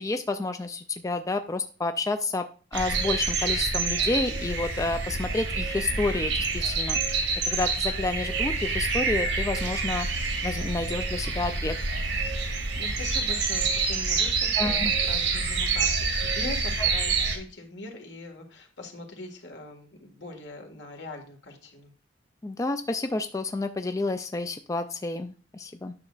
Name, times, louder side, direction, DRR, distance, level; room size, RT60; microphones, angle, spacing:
voice 1, 0.0-2.5 2.7-10.1 10.4-11.8 14.6-14.9 22.4-25.9, left 2 dB, 20° left, 8 dB, 0.4 m, -30 dB
sound 1, 2.7-17.4, right 4 dB, 80° right, 1.5 m, -27 dB
voice 2, 12.4-21.9, left 2 dB, 80° left, 2 dB, 1.8 m, -41 dB
9.6 x 6.2 x 2.4 m, 0.38 s
head